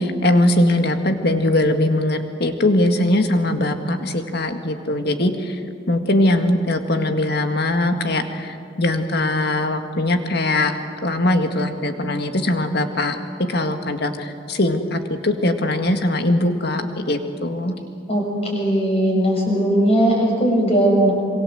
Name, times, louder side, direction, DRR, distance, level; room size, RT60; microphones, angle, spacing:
voice 1, 0.0-5.6 5.9-13.2 13.5-17.8, left 1 dB, 55° left, 6 dB, 2.0 m, -21 dB
voice 2, 18.5-21.1, right 1 dB, 30° left, -1 dB, 6.8 m, -18 dB
26.5 x 24.0 x 7.9 m, 2.4 s
head